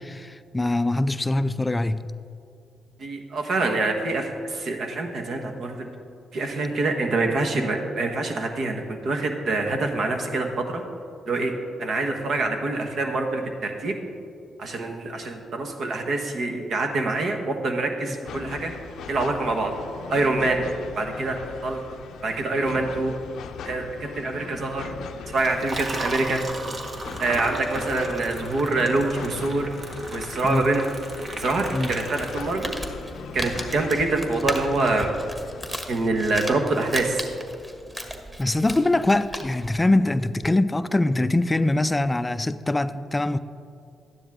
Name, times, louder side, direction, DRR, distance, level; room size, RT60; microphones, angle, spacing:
voice 1, 0.0-2.1 30.4-30.7 31.7-31.9 38.4-43.4, left 2 dB, 20° left, 0.4 m, -23 dB
voice 2, 3.0-5.9 6.3-10.8 11.3-11.5 11.8-14.0 14.6-18.7 19.1-19.7 20.1-20.7 21.0-21.8 22.2-23.2 23.6-24.9 25.3-26.4 27.2-29.7 30.1-30.9 31.4-32.7 33.3-35.1 35.9-37.3, right 2 dB, 65° right, 1.3 m, -25 dB
sound 1, 18.2-35.8, left 6 dB, 75° left, 0.5 m, -40 dB
Liquid, 25.3-33.0, right 2 dB, 50° right, 1.5 m, -36 dB
Crumpling crinkling, 32.3-39.7, equal, 10° right, 1.5 m, -36 dB
12.0 x 10.0 x 3.6 m
supercardioid pair, 65°, 0 cm